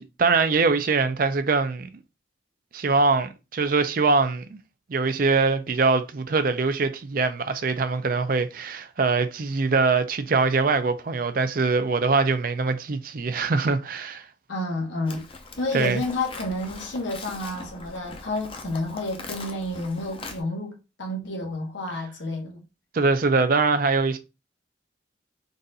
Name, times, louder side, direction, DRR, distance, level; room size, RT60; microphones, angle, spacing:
voice 1, 0.0-1.9 2.7-4.6 4.9-14.3 15.7-16.0 22.9-24.2, right 4 dB, 50° right, 0.5 m, -23 dB
voice 2, 14.5-15.3 15.6-22.6, left 2 dB, 80° left, 1.1 m, -30 dB
Livestock farm animals working animals, 15.1-20.4, left 3 dB, 30° left, 0.5 m, -41 dB
4.0 x 2.5 x 4.0 m
head